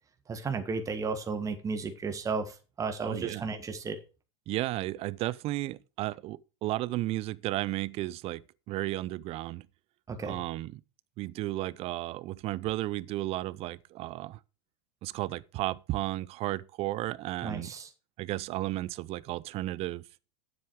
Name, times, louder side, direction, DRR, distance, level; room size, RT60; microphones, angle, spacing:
voice 1, 0.3-4.0 10.1-10.4 17.4-17.9, right 4 dB, 20° right, 1.6 m, -34 dB
voice 2, 3.0-3.4 4.5-8.4 8.7-9.7 10.2-10.8 11.2-14.4 15.0-17.7 18.2-20.0, right 17 dB, 45° right, 0.6 m, -33 dB
9.2 x 8.0 x 4.7 m
hypercardioid pair, 100°, 14 cm